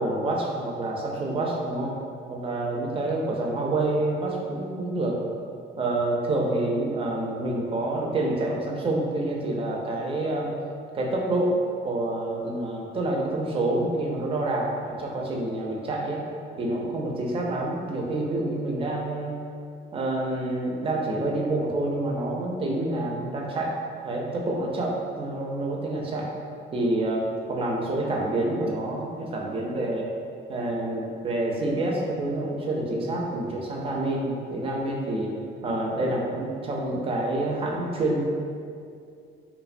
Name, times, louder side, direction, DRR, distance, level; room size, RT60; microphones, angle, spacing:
voice 1, 0.0-2.0 2.3-5.2 5.8-10.5 10.9-11.6 11.8-16.2 16.6-19.3 19.9-23.7 24.0-26.3 26.7-30.1 30.5-35.3 35.6-38.2, right 2 dB, 30° right, -1 dB, 0.3 m, -27 dB
2.9 x 2.1 x 2.4 m, 2.4 s
cardioid pair, 140°, 20 cm